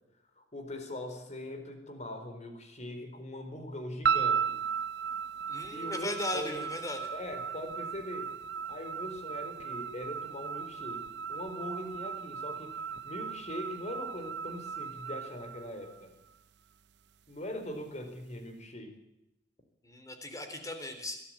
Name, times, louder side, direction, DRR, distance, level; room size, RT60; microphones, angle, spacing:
voice 1, 0.4-4.6 5.7-6.6 7.1-8.3 8.7-12.7 13.0-16.1 17.3-18.9, left 1 dB, 40° left, 6 dB, 4.3 m, -41 dB
sound 1, 4.0-16.3, right 7 dB, 70° right, 0.7 m, -36 dB
voice 2, 5.5-7.1 19.8-21.2, left 1 dB, 20° left, 6 dB, 3.6 m, -37 dB
22.0 x 14.0 x 8.8 m, 0.91 s
head